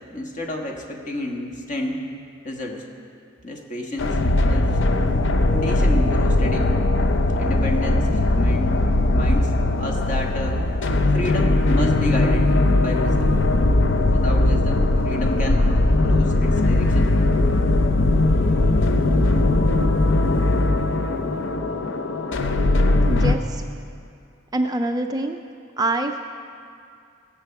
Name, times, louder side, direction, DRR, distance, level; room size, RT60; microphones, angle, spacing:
voice 1, 0.0-2.0 2.4-2.8 3.4-4.2 4.5-4.8 5.5-6.9 7.3-9.5 9.8-10.6 11.1-13.3 14.1-15.7 16.0-17.1, left 1 dB, 40° left, 1 dB, 1.4 m, -30 dB
sound 1, 4.0-23.4, left 2 dB, 65° left, 0.6 m, -19 dB
voice 2, 23.1-23.6 24.5-25.4 25.8-26.2, right 2 dB, 20° right, 5 dB, 0.4 m, -25 dB
16.5 x 7.5 x 5.8 m, 2.4 s
head